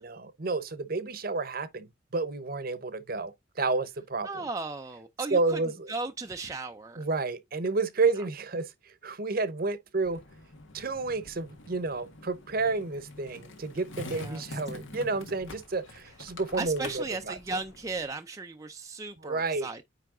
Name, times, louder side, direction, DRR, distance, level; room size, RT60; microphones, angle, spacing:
voice 1, 0.0-4.4 5.3-5.9 7.0-10.2 10.7-17.4 19.2-19.7, right 3 dB, 50° right, 0.9 m, -30 dB
voice 2, 4.2-5.6 5.9-7.0 14.2-14.4 16.6-19.8, right 3 dB, 15° right, 0.5 m, -36 dB
Skateboard, 10.0-18.0, left 2 dB, 80° left, 1.8 m, -46 dB
9.4 x 3.3 x 3.7 m
head